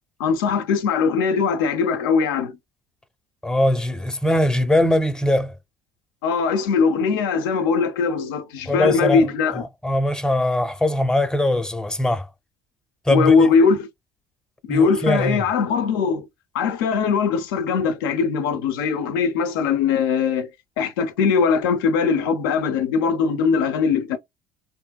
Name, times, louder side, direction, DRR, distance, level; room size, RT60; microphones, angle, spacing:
voice 1, 0.2-2.6 6.2-9.6 13.1-13.9 14.6-16.3 16.5-20.5 20.8-24.2, left 5 dB, 85° left, 0.6 m, -20 dB
voice 2, 3.4-5.5 8.7-9.3 9.8-12.3 13.1-13.5 14.7-15.4, left 1 dB, 5° left, 0.6 m, -21 dB
3.1 x 2.6 x 2.2 m
supercardioid pair, 80°, 11 cm